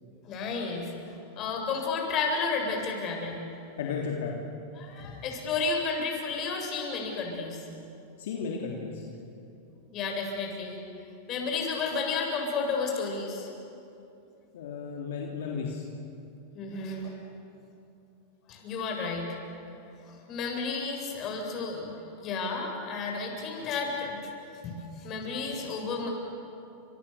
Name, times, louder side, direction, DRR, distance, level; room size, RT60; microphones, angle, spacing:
voice 1, 0.3-0.9 1.4-3.4 4.8-7.6 9.9-10.8 11.3-13.5 16.5-17.1 18.5-19.4 20.3-24.2 24.6-26.1, left 4 dB, 40° left, 2 dB, 7.3 m, -32 dB
voice 2, 3.8-4.4 5.0-5.2 8.2-9.0 14.5-15.8, left 5 dB, 75° left, -1 dB, 3.2 m, -34 dB
29.5 x 27.0 x 7.1 m, 2.8 s
hypercardioid pair, 120°, 0 cm